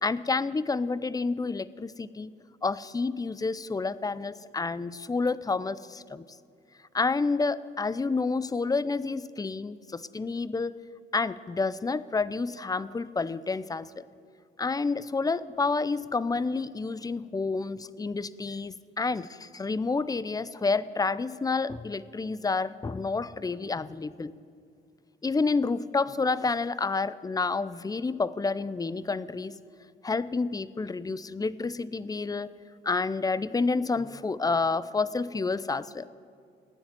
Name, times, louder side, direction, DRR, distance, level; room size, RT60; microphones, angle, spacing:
voice 1, 0.0-2.3 2.6-6.3 6.9-10.7 11.1-14.0 14.6-24.3 25.2-29.5 30.0-32.5 32.8-36.1, left 4 dB, 20° left, 18 dB, 0.5 m, -29 dB
16.0 x 9.6 x 9.4 m, 2.3 s
cardioid pair, 90°, 20 cm